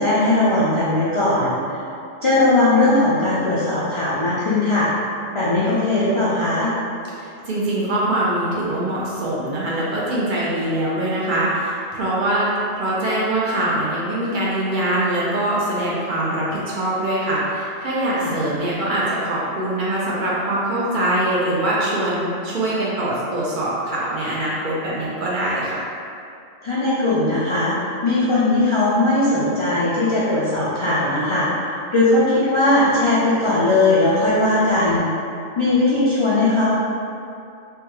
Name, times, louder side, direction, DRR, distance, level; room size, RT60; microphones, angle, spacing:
voice 1, 0.0-1.8 2.2-4.9 5.3-6.7 18.2-18.4 26.6-27.7 28.0-35.1 35.6-36.7, left 2 dB, 50° left, -10 dB, 0.3 m, -19 dB
voice 2, 7.1-25.8, right 1 dB, 55° right, -7 dB, 0.6 m, -23 dB
3.3 x 2.2 x 2.9 m, 2.5 s
omnidirectional pair, 1.2 m